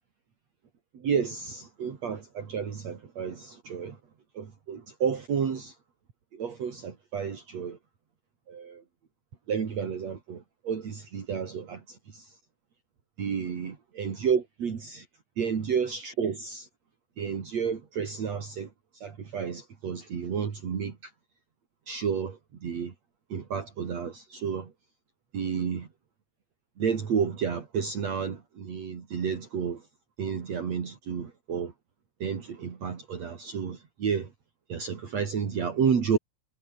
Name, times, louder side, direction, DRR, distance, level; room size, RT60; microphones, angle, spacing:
voice 1, 0.9-4.0 4.4-5.7 6.3-7.8 8.5-8.8 9.5-12.3 13.2-15.1 15.4-16.7 17.2-18.7 19.0-21.1 21.9-22.9 23.3-24.7 25.3-25.9 26.8-29.8 30.2-31.7 32.2-34.3 34.7-36.2, right 7 dB, 55° right, 3.9 m, -31 dB
omnidirectional pair, 3.8 m